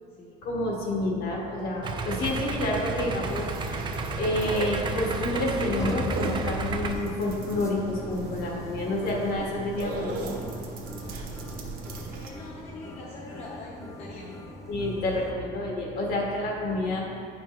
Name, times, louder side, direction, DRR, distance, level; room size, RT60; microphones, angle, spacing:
voice 1, 0.4-3.8 4.2-10.3 14.7-17.0, left 1 dB, 65° left, -2 dB, 1.6 m, -29 dB
Idling, 1.8-6.9, right 3 dB, 25° right, 0.4 m, -32 dB
sound 1, 2.2-12.3, right 3 dB, 60° right, 1.0 m, -37 dB
sound 2, 5.1-15.3, left 1 dB, 15° left, 0.6 m, -41 dB
voice 2, 12.1-14.3, left 2 dB, 35° left, -5 dB, 0.9 m, -43 dB
9.4 x 5.2 x 3.1 m, 2.3 s
cardioid pair, 160°, 17 cm